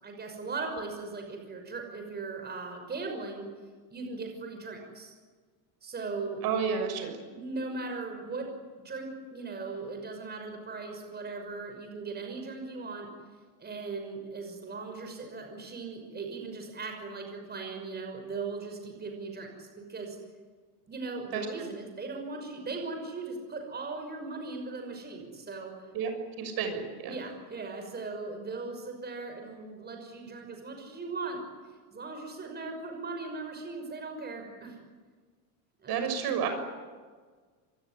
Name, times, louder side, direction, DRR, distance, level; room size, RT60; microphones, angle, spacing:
voice 1, 0.0-3.5 3.9-5.1 5.8-6.5 7.3-8.5 8.8-13.1 13.6-20.2 20.9-25.9 27.1-31.5 31.9-34.8 35.8-35.9, right 3 dB, 20° right, 4 dB, 6.0 m, -38 dB
voice 2, 6.4-7.2 21.3-21.5 25.9-26.1 26.4-27.1 35.9-36.5, right 7 dB, 55° right, 7 dB, 6.6 m, -30 dB
26.0 x 22.5 x 9.9 m, 1.5 s
cardioid pair, 135°, 44 cm